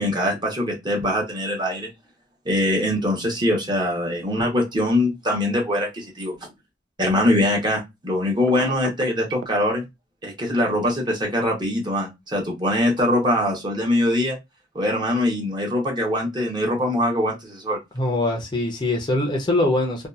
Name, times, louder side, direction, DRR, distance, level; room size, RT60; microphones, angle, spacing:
voice 1, 0.0-1.9 2.4-6.3 7.0-9.8 10.2-14.4 14.7-17.8, left 1 dB, 25° right, 0.8 m, -23 dB
Telephone, 8.5-9.6, right 6 dB, 70° right, 0.4 m, -33 dB
voice 2, 17.9-20.1, left 2 dB, 25° left, 0.6 m, -22 dB
2.6 x 2.3 x 2.3 m
head